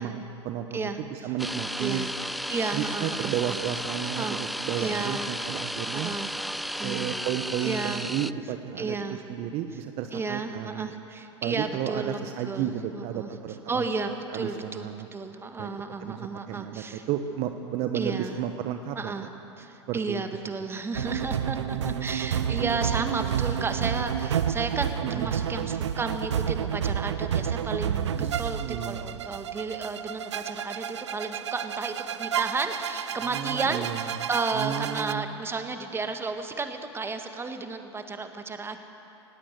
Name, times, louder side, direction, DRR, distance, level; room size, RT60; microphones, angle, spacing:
voice 1, 0.0-2.1 2.7-6.1 6.8-9.0 9.3-10.9 11.4-13.9 14.3-15.1 15.6-15.7 16.0-19.1 19.9-20.5 21.7-22.0 25.0-25.6 28.1-29.2 33.2-34.0 34.5-35.3, right 10 dB, 45° right, 7 dB, 1.0 m, -33 dB
voice 2, 0.7-1.3 1.8-2.1 2.5-3.3 4.1-4.4 4.8-5.3 5.9-6.4 6.8-7.1 7.6-8.0 8.8-9.2 10.1-13.3 13.7-17.0 17.9-18.4 19.0-19.3 19.6-38.8, right 4 dB, 15° right, 6 dB, 1.8 m, -33 dB
sound 1, 1.4-8.3, equal, ahead, 0.4 m, -33 dB
sound 2, 20.9-35.1, right 9 dB, 80° right, 0.7 m, -30 dB
19.5 x 16.5 x 8.2 m, 3.0 s
hypercardioid pair, 95°, 15 cm